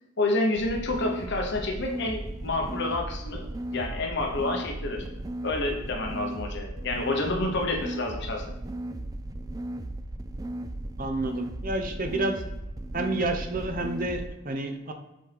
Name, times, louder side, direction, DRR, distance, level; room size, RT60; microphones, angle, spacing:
voice 1, 0.2-3.5 3.7-5.1 5.4-8.4, left 2 dB, 60° left, 2 dB, 1.1 m, -29 dB
sound 1, 0.6-14.3, right 1 dB, 20° right, 0.3 m, -36 dB
voice 2, 11.0-12.4 12.9-14.9, right 2 dB, 45° right, 6 dB, 0.8 m, -29 dB
7.5 x 4.2 x 3.5 m, 0.94 s
head